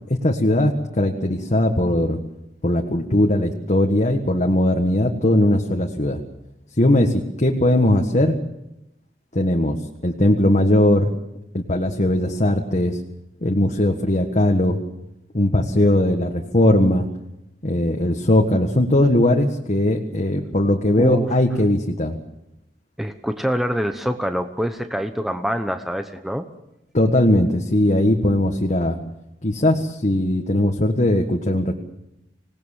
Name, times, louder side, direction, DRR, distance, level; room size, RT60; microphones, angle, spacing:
voice 1, 0.1-2.2 2.6-6.2 6.8-8.4 9.3-9.8 10.0-11.1 11.5-13.0 13.4-14.8 15.3-17.1 17.6-22.2 26.9-29.0 29.4-31.7, left 1 dB, 40° left, 2 dB, 1.7 m, -19 dB
voice 2, 20.9-21.3 23.0-26.4, equal, ahead, 6 dB, 1.0 m, -25 dB
26.5 x 18.5 x 7.4 m, 0.87 s
head